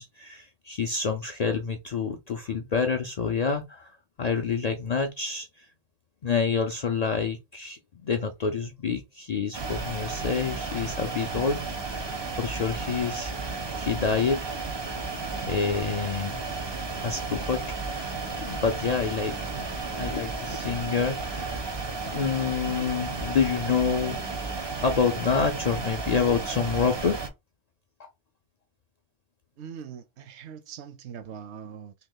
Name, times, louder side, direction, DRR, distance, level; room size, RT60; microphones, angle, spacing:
voice 1, 0.0-3.9 4.2-5.7 6.2-12.1 12.4-14.4 15.5-16.4 17.0-17.6 17.9-18.1 18.4-19.4 19.9-21.8 22.1-24.2 24.5-27.2 28.0-28.1, left 5 dB, 60° left, 0.4 m, -28 dB
sound 1, 9.5-27.3, right 3 dB, 35° right, 0.4 m, -33 dB
voice 2, 29.6-31.9, right 7 dB, 75° right, 0.9 m, -41 dB
2.9 x 2.9 x 3.7 m
omnidirectional pair, 1.2 m